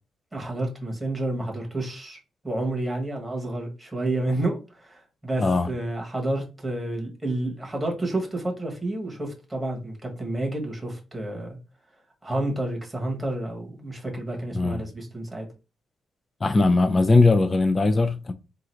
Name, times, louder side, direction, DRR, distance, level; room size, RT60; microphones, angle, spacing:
voice 1, 0.3-2.2 2.4-11.6 12.2-15.5, right 1 dB, 5° right, 1.2 m, -30 dB
voice 2, 16.4-18.3, left 3 dB, 25° left, 0.3 m, -20 dB
3.8 x 2.5 x 4.3 m
wide cardioid pair, 155°, 0 cm